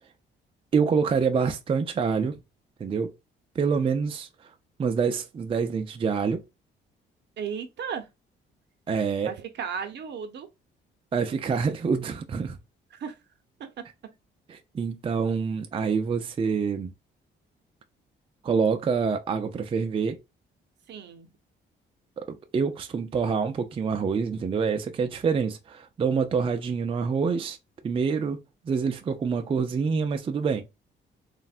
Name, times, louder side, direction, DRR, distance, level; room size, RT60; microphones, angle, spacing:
voice 1, 0.7-2.4 2.8-3.1 3.6-4.3 4.8-6.4 8.9-9.3 11.1-12.6 14.5-16.9 18.4-20.2 22.2-27.6 27.8-30.6, right 5 dB, 25° right, 0.4 m, -26 dB
voice 2, 7.4-8.1 9.2-10.5 12.9-13.2 20.9-21.3, right 7 dB, 60° right, 0.7 m, -35 dB
3.2 x 2.1 x 2.4 m
cardioid pair, 90°, 20 cm